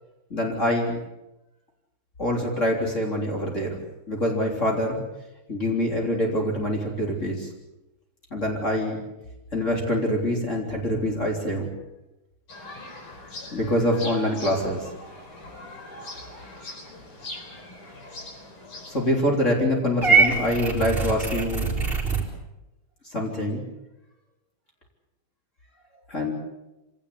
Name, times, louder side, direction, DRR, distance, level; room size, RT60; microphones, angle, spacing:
voice 1, 0.3-1.0 2.2-5.0 5.5-7.5 8.3-9.0 9.5-11.7 13.5-14.9 16.5-16.6 18.9-21.7 23.0-23.6 26.1-26.3, left 1 dB, 30° left, -1 dB, 3.9 m, -25 dB
sound 1, 12.5-19.1, left 1 dB, 85° left, 4.7 m, -41 dB
Purr / Meow, 20.0-22.2, right 4 dB, 25° right, 3.9 m, -22 dB
25.5 x 18.0 x 8.4 m, 0.98 s
omnidirectional pair, 2.4 m